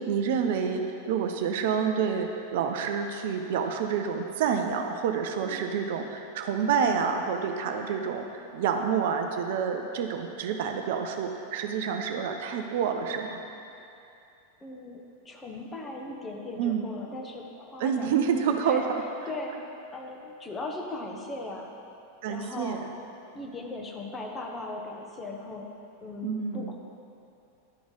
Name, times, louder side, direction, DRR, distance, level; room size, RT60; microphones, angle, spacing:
voice 1, 0.0-13.4 16.6-16.8 17.8-19.0 22.2-22.8 26.2-26.8, right 7 dB, 55° right, 5 dB, 0.5 m, -28 dB
voice 2, 14.6-18.1 18.4-18.8 19.3-19.6 19.9-21.7 22.2-22.8 23.3-25.7 26.0-26.8, left 2 dB, 20° left, 1 dB, 0.9 m, -38 dB
11.5 x 4.7 x 4.0 m, 2.8 s
figure-of-eight pair, 90°, 0 cm